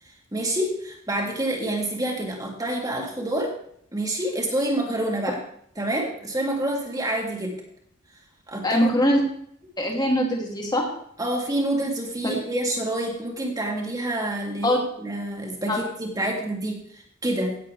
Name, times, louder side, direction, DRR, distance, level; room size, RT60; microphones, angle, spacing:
voice 1, 0.3-3.5 3.9-5.4 5.8-7.6 8.5-8.9 11.2-17.6, right 1 dB, 20° right, 0 dB, 2.8 m, -27 dB
voice 2, 8.6-9.2 9.8-10.9 12.2-12.3 14.6-14.8 15.7-15.8, equal, 20° left, 0 dB, 2.8 m, -22 dB
17.0 x 8.3 x 3.4 m, 0.65 s
head